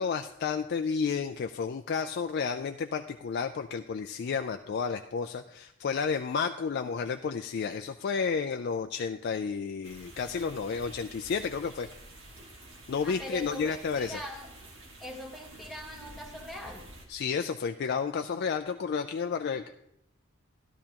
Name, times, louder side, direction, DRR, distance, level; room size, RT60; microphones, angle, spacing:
voice 1, 0.0-11.9 12.9-14.2 17.1-19.7, left 5 dB, 55° left, 7 dB, 0.4 m, -31 dB
sound 1, 9.8-17.1, right 1 dB, 75° right, 1.9 m, -49 dB
voice 2, 13.0-14.5 15.0-16.8, equal, ahead, 0 dB, 1.4 m, -42 dB
12.5 x 12.0 x 2.9 m, 0.80 s
head